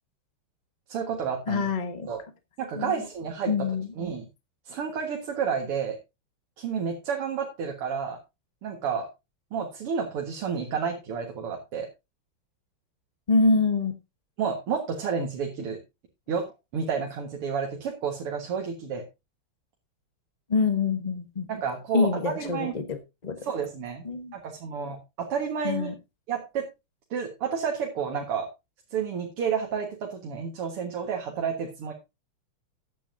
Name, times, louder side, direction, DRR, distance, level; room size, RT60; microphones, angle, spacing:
voice 1, 0.9-1.7 2.1-2.2 2.6-3.5 4.0-4.3 4.7-6.0 6.6-8.2 8.6-9.1 9.5-11.9 14.4-15.8 16.3-19.0 21.5-22.7 23.4-24.0 24.3-25.9 26.3-26.7 27.1-28.5 28.9-31.9, right 6 dB, 85° right, 1 dB, 2.6 m, -30 dB
voice 2, 1.5-2.1 2.8-3.0 3.5-3.9 13.3-14.0 20.5-21.5 21.9-23.4 24.0-24.3 25.6-25.9, left 4 dB, 30° left, 8 dB, 0.8 m, -25 dB
14.0 x 9.9 x 2.7 m, 0.24 s
omnidirectional pair, 2.4 m